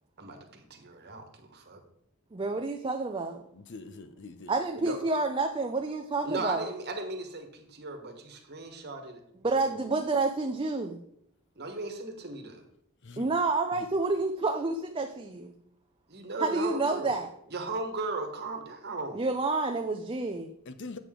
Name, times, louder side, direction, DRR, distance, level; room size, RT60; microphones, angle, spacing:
voice 1, 0.2-1.8 4.7-5.0 6.2-9.2 9.5-9.9 11.6-12.6 16.1-17.1 17.5-19.2, right 2 dB, 50° right, 4 dB, 1.3 m, -37 dB
voice 2, 2.3-3.4 4.5-6.7 9.4-11.0 13.2-15.5 16.4-17.3 19.1-20.5, right 3 dB, 25° right, 5 dB, 0.4 m, -29 dB
voice 3, 3.5-4.6 13.0-13.4 13.7-13.9 20.7-21.0, left 3 dB, 55° left, 11 dB, 0.6 m, -44 dB
8.3 x 6.7 x 3.7 m, 0.72 s
head